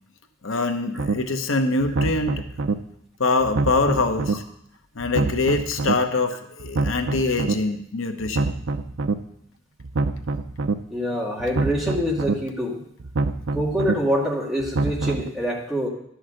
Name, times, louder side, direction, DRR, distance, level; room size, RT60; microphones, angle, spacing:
voice 1, 0.4-2.3 3.2-4.4 5.0-8.6, left 3 dB, 85° left, 6 dB, 1.0 m, -24 dB
sound 1, 1.0-1.1 1.8-2.7 3.4-4.3 5.0-5.9 6.6-7.5 8.2-9.1 9.8-10.7 11.4-12.3 13.0-13.9 14.6-15.3, right 3 dB, 85° right, 0.6 m, -25 dB
voice 2, 10.9-12.8 13.5-15.9, equal, ahead, -4 dB, 2.0 m, -25 dB
11.5 x 6.3 x 6.4 m, 0.73 s
head